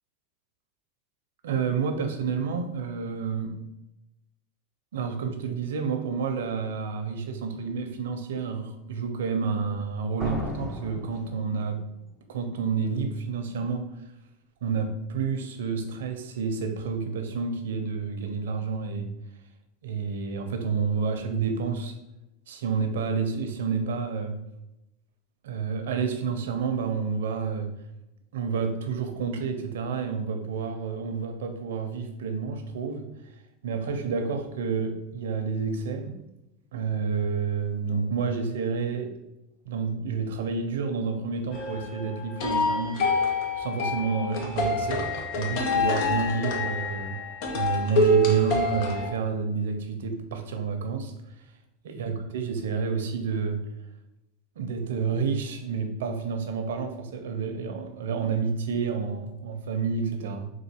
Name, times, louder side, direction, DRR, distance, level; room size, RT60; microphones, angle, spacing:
voice 1, 1.4-3.6 4.9-11.8 12.3-13.9 14.6-19.1 19.8-22.0 22.5-24.4 25.4-27.7 28.3-33.1 33.6-36.2 36.7-39.1 39.6-45.1 45.4-47.2 47.5-51.1 51.8-53.6 54.6-60.5, right 5 dB, 85° right, 6 dB, 0.7 m, -29 dB
sound 1, 10.2-12.0, left 1 dB, 15° left, 0.8 m, -36 dB
sound 2, 41.5-49.1, left 1 dB, 60° left, 0.8 m, -26 dB
3.9 x 2.5 x 4.4 m, 0.90 s
supercardioid pair, 120°, 0 cm